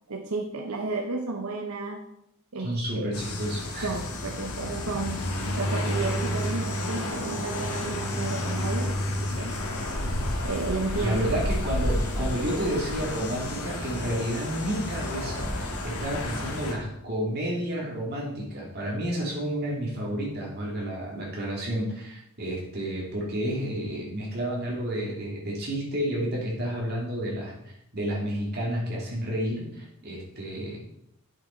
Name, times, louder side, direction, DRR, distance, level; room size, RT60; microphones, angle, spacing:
voice 1, 0.1-2.1 2.5-3.1 3.8-5.2 5.5-9.5 10.4-11.2, right 3 dB, 85° right, 2 dB, 0.9 m, -32 dB
voice 2, 2.6-3.9 11.0-30.8, equal, 45° right, -3 dB, 3.0 m, -31 dB
sound 1, 3.1-16.7, left 1 dB, 85° left, 1.7 m, -30 dB
8.3 x 6.9 x 4.5 m, 0.78 s
head